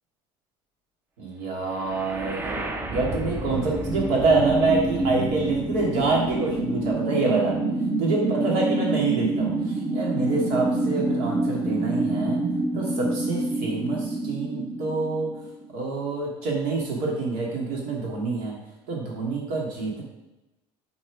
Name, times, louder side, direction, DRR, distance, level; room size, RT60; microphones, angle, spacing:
voice 1, 1.2-7.6 8.0-12.4 12.7-15.3 15.7-18.5 18.9-20.0, right 3 dB, 80° right, -2 dB, 2.7 m, -26 dB
sound 1, 1.8-15.7, right 2 dB, 15° right, 0.6 m, -27 dB
8.8 x 4.3 x 4.9 m, 0.98 s
cardioid pair, 180°, 12 cm